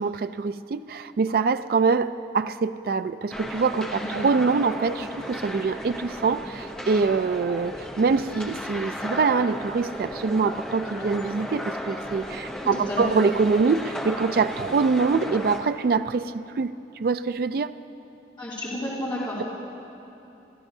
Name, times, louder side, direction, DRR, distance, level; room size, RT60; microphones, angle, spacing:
voice 1, 0.0-16.7 17.0-17.7, right 4 dB, 55° right, 12 dB, 0.3 m, -24 dB
sound 1, 3.3-15.6, equal, 5° left, 0.7 m, -35 dB
voice 2, 12.6-13.1 18.4-19.4, left 1 dB, 25° left, -11 dB, 2.7 m, -31 dB
28.0 x 13.0 x 2.7 m, 2.9 s
head